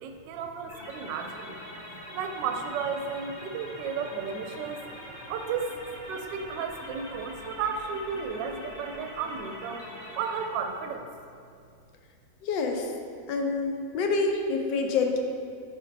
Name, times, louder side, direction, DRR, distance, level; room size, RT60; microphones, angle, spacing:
voice 1, 0.0-1.6 2.1-4.8 5.3-5.7 6.1-9.8 10.2-11.1, right 6 dB, 75° right, 5 dB, 1.1 m, -33 dB
sound 1, 0.7-10.5, equal, 25° left, 1.5 m, -43 dB
voice 2, 12.4-12.9 13.3-15.2, left 4 dB, 75° left, 3 dB, 1.2 m, -27 dB
8.9 x 4.4 x 2.6 m, 2.3 s
omnidirectional pair, 2.1 m